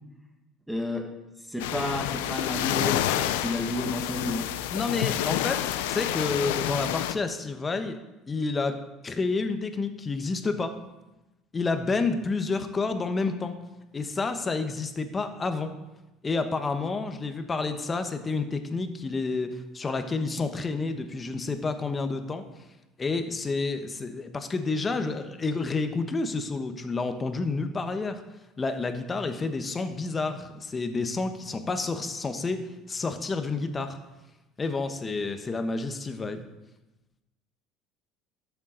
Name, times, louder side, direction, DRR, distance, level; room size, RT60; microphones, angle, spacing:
voice 1, 0.7-1.1 1.5-4.5, left 1 dB, 5° right, 2 dB, 1.8 m, -31 dB
sound 1, 1.6-7.1, left 13 dB, 85° left, 0.4 m, -29 dB
voice 2, 4.7-8.0 8.3-10.8 11.5-13.5 13.9-15.7 16.2-22.4 23.0-28.2 28.6-32.6 32.9-34.0 34.6-36.4, left 3 dB, 25° left, 8 dB, 1.1 m, -29 dB
12.5 x 7.2 x 3.9 m, 1.0 s
supercardioid pair, 80°, 0 cm